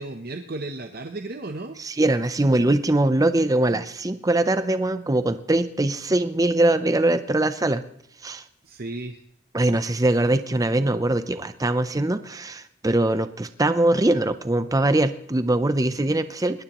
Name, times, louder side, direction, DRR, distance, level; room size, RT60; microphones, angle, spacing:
voice 1, 0.0-1.8 8.6-9.2, right 2 dB, 45° right, 6 dB, 0.8 m, -34 dB
voice 2, 1.8-7.8 8.2-8.4 9.5-16.6, right 1 dB, 15° right, 11 dB, 0.5 m, -22 dB
21.0 x 18.5 x 3.0 m, 0.72 s
head